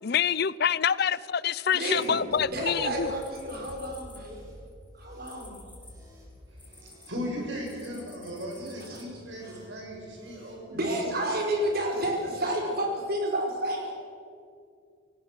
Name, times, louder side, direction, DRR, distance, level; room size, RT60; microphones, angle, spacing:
voice 1, 0.0-3.1, left 7 dB, 50° left, 20 dB, 0.5 m, -26 dB
voice 2, 1.7-2.2 2.5-4.4 5.0-5.6 8.8-9.2 10.7-13.9, right 1 dB, 50° right, 1 dB, 4.9 m, -30 dB
sound 1, 1.8-2.6 3.2-7.1 7.6-9.0, left 3 dB, 10° left, 2.9 m, -52 dB
sound 2, 2.2-12.3, equal, 20° right, 7.4 m, -51 dB
voice 3, 6.5-11.3, equal, 70° right, -1 dB, 6.3 m, -38 dB
28.0 x 18.0 x 6.5 m, 2.3 s
head